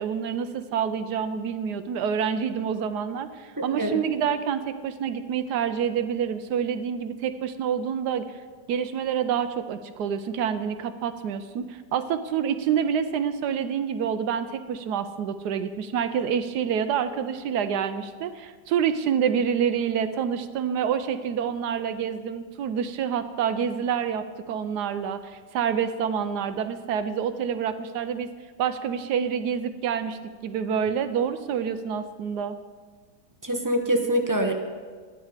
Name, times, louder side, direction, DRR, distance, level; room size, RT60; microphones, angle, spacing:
voice 1, 0.0-8.2 8.7-28.3 28.6-32.6, right 7 dB, 75° right, 10 dB, 1.1 m, -27 dB
voice 2, 3.6-4.0 33.4-34.5, equal, 25° right, 3 dB, 0.4 m, -25 dB
12.0 x 10.5 x 4.9 m, 1.5 s
omnidirectional pair, 1.8 m